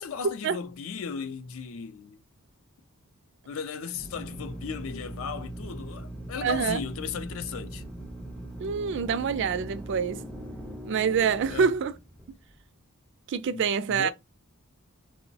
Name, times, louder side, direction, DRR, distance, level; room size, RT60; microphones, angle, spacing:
voice 1, 0.0-2.2 3.5-7.8 11.5-11.7 13.5-14.1, left 6 dB, 65° left, 0.4 m, -36 dB
Drill, 3.9-12.5, right 1 dB, 5° left, 0.5 m, -40 dB
voice 2, 6.4-6.8 8.6-10.2 10.9-11.9 13.3-14.1, right 6 dB, 55° right, 0.3 m, -26 dB
2.9 x 2.0 x 2.6 m
head